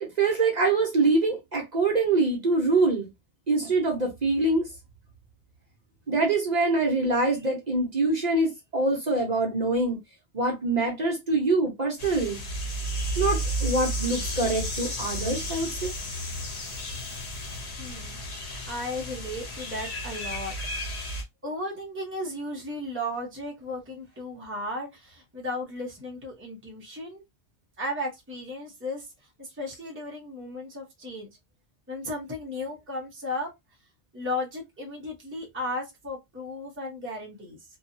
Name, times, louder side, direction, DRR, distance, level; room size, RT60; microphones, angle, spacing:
voice 1, 0.0-3.1 3.5-4.7 6.1-10.0 10.3-12.4 13.2-15.9, right 3 dB, 45° right, 0.8 m, -24 dB
sound 1, 12.0-21.2, equal, 90° left, 1.1 m, -32 dB
voice 2, 17.8-20.5 21.4-27.2 27.8-29.1 29.4-31.3 31.9-33.5 34.1-37.6, left 1 dB, 15° right, 0.7 m, -35 dB
2.7 x 2.3 x 2.6 m
omnidirectional pair, 1.1 m